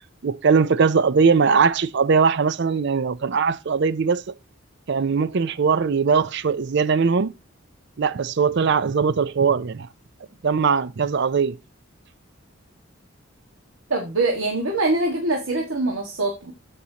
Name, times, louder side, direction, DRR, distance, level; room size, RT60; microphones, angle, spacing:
voice 1, 0.2-4.2 4.9-7.3 8.0-9.9 10.4-11.6, right 5 dB, 60° right, 0.5 m, -20 dB
voice 2, 13.9-16.5, right 2 dB, 80° right, 1.6 m, -23 dB
13.5 x 5.4 x 2.9 m
head